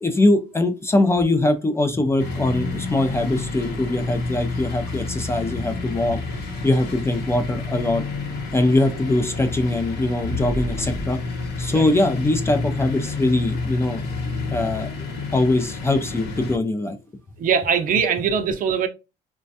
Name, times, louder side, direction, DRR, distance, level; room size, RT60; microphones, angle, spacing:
voice 1, 0.0-6.2 6.6-8.0 8.5-11.2 11.6-14.0 14.3-15.1 15.3-17.0, left 2 dB, 15° left, 0.4 m, -22 dB
sound 1, 2.2-16.6, left 3 dB, 80° left, 0.8 m, -30 dB
Fire, 10.1-12.5, equal, 45° left, 0.9 m, -34 dB
voice 2, 17.4-18.9, right 7 dB, 55° right, 0.5 m, -21 dB
3.2 x 2.2 x 2.6 m
cardioid pair, 110°, 17 cm